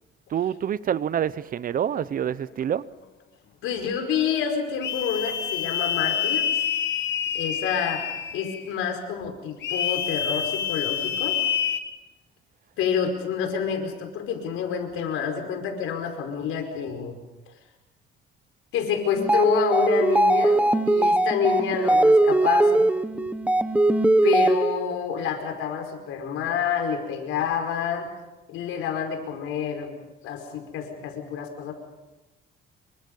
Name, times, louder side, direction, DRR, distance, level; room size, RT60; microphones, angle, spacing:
voice 1, 0.3-2.9, right 9 dB, 45° right, 18 dB, 0.7 m, -27 dB
voice 2, 3.6-6.5 7.3-8.1 8.3-11.4 12.8-17.2 18.7-22.9 24.2-28.1 28.5-30.0 30.2-31.7, left 7 dB, 85° left, 4 dB, 5.0 m, -28 dB
sound 1, 4.8-8.7 9.6-11.8, left 9 dB, 60° left, 1.8 m, -27 dB
sound 2, 19.2-24.9, right 2 dB, 5° right, 0.9 m, -20 dB
27.5 x 24.0 x 5.5 m, 1.1 s
cardioid pair, 135°, 21 cm